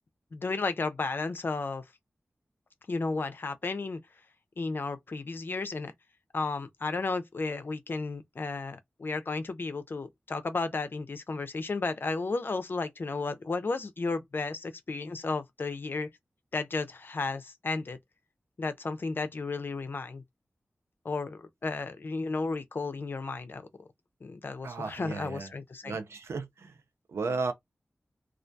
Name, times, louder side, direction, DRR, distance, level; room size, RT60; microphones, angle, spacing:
voice 1, 0.3-1.8 2.9-4.0 4.6-5.9 6.3-16.1 16.5-18.0 18.6-20.2 21.0-23.6 24.2-26.0, left 3 dB, 55° left, 0.4 m, -33 dB
voice 2, 24.6-25.5 25.8-26.7 27.1-27.5, right 4 dB, 85° right, 0.4 m, -34 dB
2.3 x 2.2 x 2.6 m
cardioid pair, 55°, 4 cm